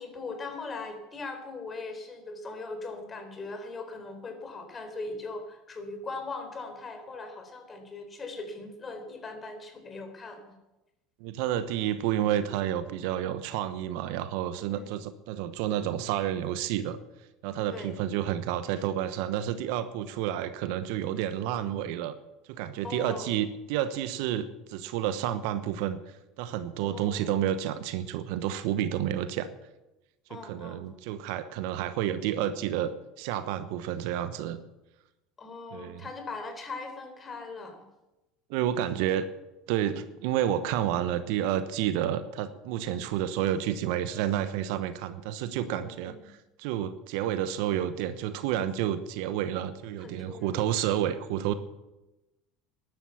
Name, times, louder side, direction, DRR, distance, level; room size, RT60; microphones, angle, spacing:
voice 1, 0.0-10.5 14.7-14.9 17.7-18.0 22.8-23.4 26.8-27.4 30.3-30.8 35.4-37.8 39.9-40.1 42.8-43.1 45.8-46.2 50.0-50.6, left 3 dB, 30° left, 6 dB, 4.1 m, -40 dB
voice 2, 11.2-17.0 17.4-22.1 22.5-26.0 26.4-29.5 30.3-32.9 33.2-34.6 35.7-36.0 38.5-39.3 39.7-51.5, right 11 dB, 65° right, 12 dB, 1.0 m, -30 dB
13.5 x 11.5 x 7.2 m, 1.0 s
hypercardioid pair, 75°, 0 cm